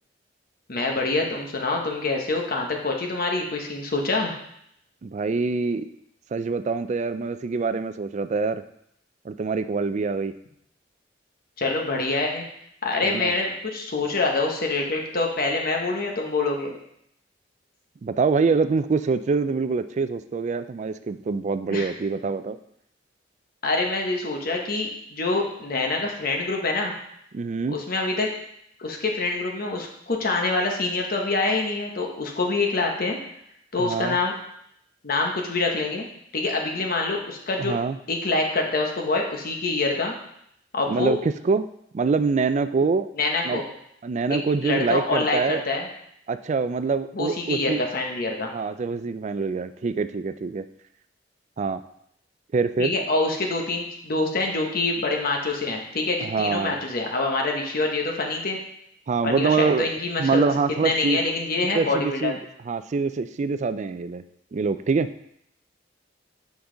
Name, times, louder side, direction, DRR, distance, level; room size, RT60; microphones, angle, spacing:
voice 1, 0.7-4.3 11.6-12.4 12.8-16.7 21.7-21.9 23.6-26.9 27.7-28.3 28.8-33.2 33.7-34.3 35.0-36.1 36.3-37.8 38.1-40.1 40.7-41.1 43.2-43.6 44.3-45.9 47.1-48.5 52.8-58.6 59.2-60.5 60.8-62.3, left 3 dB, 55° left, 1 dB, 1.0 m, -25 dB
voice 2, 5.0-5.9 6.3-8.6 9.2-10.3 13.0-13.3 18.0-22.6 27.3-27.8 33.8-34.2 37.6-38.0 40.9-41.7 41.9-43.1 43.4-43.6 44.0-45.6 46.3-47.8 48.5-50.7 51.6-51.8 52.5-52.9 56.2-56.8 59.1-59.9 60.2-61.2 61.6-62.4 62.7-64.2 64.5-65.1, right 4 dB, 40° right, 12 dB, 0.3 m, -25 dB
7.1 x 5.3 x 3.8 m, 0.74 s
head